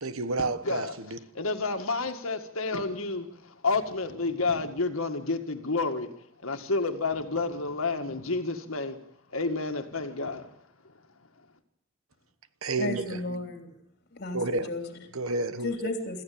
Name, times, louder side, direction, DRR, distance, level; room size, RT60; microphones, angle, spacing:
voice 1, 0.0-0.9 12.6-13.2 14.3-14.7 15.1-15.7, right 3 dB, 80° right, 1.3 m, -30 dB
voice 2, 0.6-11.5, left 3 dB, 75° left, 1.9 m, -31 dB
voice 3, 12.8-13.7 14.1-15.1 15.6-16.2, left 2 dB, 50° left, 3.5 m, -33 dB
26.0 x 14.5 x 8.7 m
head